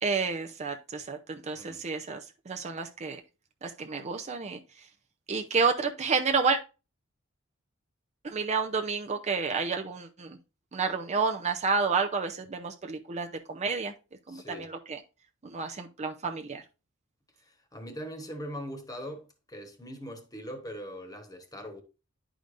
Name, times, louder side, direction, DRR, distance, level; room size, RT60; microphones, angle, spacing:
voice 1, 0.0-2.2 2.5-3.2 3.6-4.6 5.3-6.6 8.2-10.4 10.7-13.9 14.3-15.0 15.4-16.6, right 5 dB, 35° right, 0.6 m, -30 dB
voice 2, 1.5-1.9 14.3-14.7 17.5-21.8, equal, 20° left, 1.3 m, -41 dB
10.5 x 5.0 x 2.6 m
head